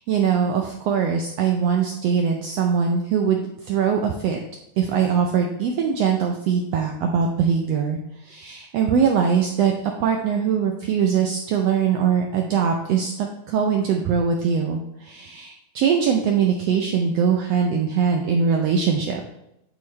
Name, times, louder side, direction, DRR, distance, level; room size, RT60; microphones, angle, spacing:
voice 1, 0.0-4.4 4.8-19.3, right 7 dB, 85° right, 2 dB, 1.4 m, -22 dB
11.0 x 3.9 x 3.2 m, 0.84 s
omnidirectional pair, 3.6 m